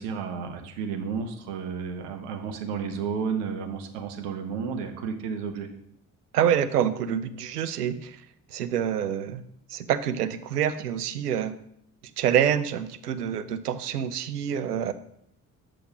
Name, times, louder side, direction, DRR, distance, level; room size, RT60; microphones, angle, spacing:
voice 1, 0.0-5.7, right 6 dB, 65° right, 5 dB, 1.1 m, -32 dB
voice 2, 6.3-8.2 8.5-9.4 9.7-11.5 12.2-14.9, right 9 dB, 80° right, 11 dB, 0.5 m, -26 dB
7.6 x 5.0 x 5.2 m, 0.71 s
figure-of-eight pair, 45°, 46 cm